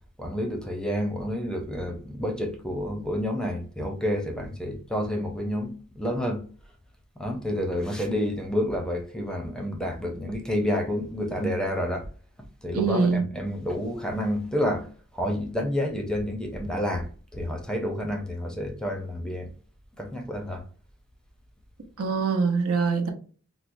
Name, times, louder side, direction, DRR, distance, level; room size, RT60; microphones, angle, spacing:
voice 1, 0.2-6.4 7.2-12.1 12.6-14.9 15.1-19.5 19.9-20.6, equal, 5° left, 0.6 m, -29 dB
voice 2, 12.7-13.2 22.0-23.1, right 5 dB, 75° right, 0.8 m, -23 dB
4.5 x 2.0 x 2.5 m
head